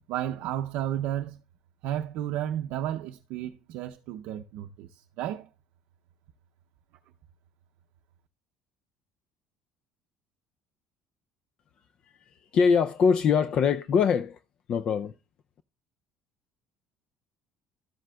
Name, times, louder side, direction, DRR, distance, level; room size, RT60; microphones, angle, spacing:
voice 1, 0.1-1.4 1.8-5.5, right 11 dB, 70° right, 0.5 m, -32 dB
voice 2, 12.5-14.4 14.7-15.1, left 6 dB, 40° left, 0.4 m, -23 dB
13.0 x 7.6 x 2.2 m
cardioid pair, 150°, 2 cm